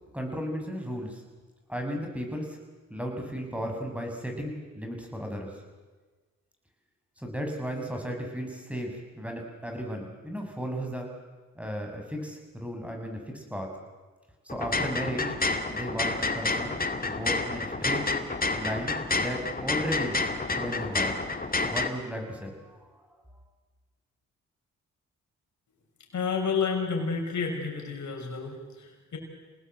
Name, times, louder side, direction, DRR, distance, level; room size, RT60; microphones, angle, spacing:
voice 1, 0.1-1.2 1.7-2.6 2.9-5.6 7.2-11.1 11.6-13.7 14.4-15.4 15.7-18.1 18.6-21.3 21.6-22.9, equal, 5° right, 3 dB, 7.3 m, -35 dB
sound 1, 14.5-21.9, left 3 dB, 30° left, 2.2 m, -29 dB
voice 2, 26.1-29.2, left 5 dB, 65° left, 1 dB, 6.4 m, -30 dB
27.0 x 19.0 x 8.2 m, 1.3 s
supercardioid pair, 50°, 32 cm